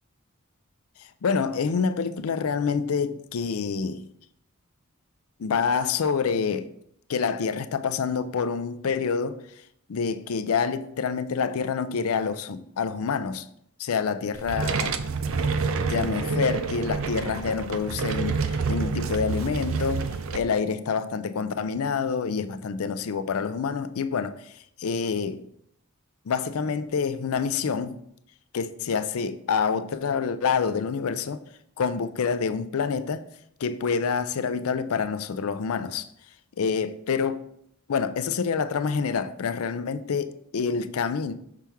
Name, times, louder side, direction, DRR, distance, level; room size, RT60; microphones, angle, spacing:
voice 1, 1.2-4.0 5.4-6.7 7.1-9.4 9.9-13.4 13.8-15.0 15.9-20.1 20.3-24.3 24.8-25.4 26.3-28.0 28.5-31.4 31.8-33.2 33.6-36.1 36.6-37.4 37.9-41.3, left 5 dB, 90° left, 0.5 m, -27 dB
sound 1, 14.3-20.4, right 4 dB, 70° right, 0.5 m, -28 dB
6.1 x 5.8 x 3.4 m
head